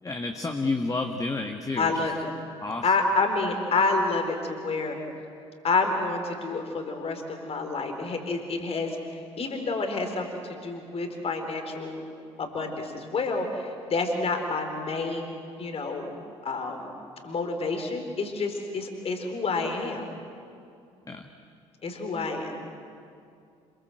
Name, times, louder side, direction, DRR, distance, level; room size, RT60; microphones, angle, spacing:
voice 1, 0.0-2.1 2.6-2.8 21.1-21.3, left 3 dB, 20° left, 4 dB, 1.7 m, -30 dB
voice 2, 1.8-2.3 2.8-5.0 5.6-12.0 12.4-16.9 17.2-20.0 21.8-22.5, left 3 dB, 40° left, 5 dB, 4.3 m, -29 dB
27.5 x 21.5 x 7.9 m, 2.4 s
figure-of-eight pair, 50°, 15 cm